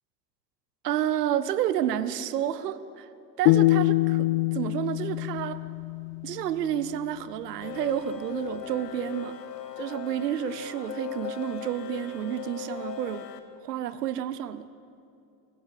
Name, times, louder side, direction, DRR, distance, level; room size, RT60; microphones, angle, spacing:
voice 1, 0.8-3.1 3.4-5.6 6.2-9.4 9.8-13.3 13.6-14.7, right 11 dB, 70° right, 14 dB, 0.9 m, -30 dB
sound 1, 3.5-6.6, left 19 dB, 40° left, 0.5 m, -24 dB
sound 2, 7.6-13.4, left 8 dB, 75° left, 1.6 m, -38 dB
24.0 x 15.0 x 7.5 m, 2.7 s
figure-of-eight pair, 70°, 50 cm